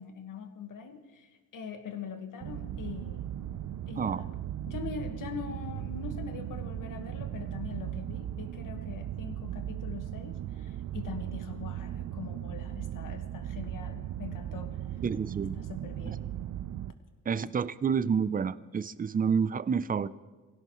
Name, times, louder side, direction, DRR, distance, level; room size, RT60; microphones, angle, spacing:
voice 1, 0.0-3.3 3.9-4.3 4.7-15.0 15.6-16.3, left 6 dB, 75° left, 6 dB, 1.6 m, -42 dB
sound 1, 2.4-16.9, right 11 dB, 65° right, 0.6 m, -37 dB
voice 2, 15.0-15.6 16.1-16.2 17.3-20.1, right 6 dB, 25° right, 16 dB, 0.5 m, -29 dB
24.5 x 17.0 x 3.1 m, 1.3 s
cardioid pair, 105°, 32 cm